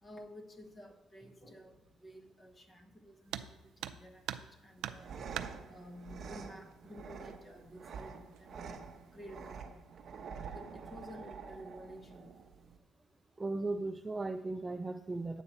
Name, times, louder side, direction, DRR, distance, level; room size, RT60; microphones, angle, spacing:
voice 1, 0.0-3.3 3.8-5.1 5.7-9.6 10.5-12.2, equal, 20° left, 4 dB, 1.1 m, -52 dB
sound 1, 3.3-3.5 3.8-4.5 4.8-5.5 6.7-6.8 7.3-7.4 8.1-8.5 8.9-9.3, right 11 dB, 80° right, 0.5 m, -41 dB
sound 2, 4.8-12.8, right 5 dB, 40° right, 1.0 m, -47 dB
voice 2, 13.4-15.4, right 2 dB, 10° right, 7 dB, 0.3 m, -37 dB
10.5 x 8.1 x 4.2 m, 0.93 s
cardioid pair, 165°, 0 cm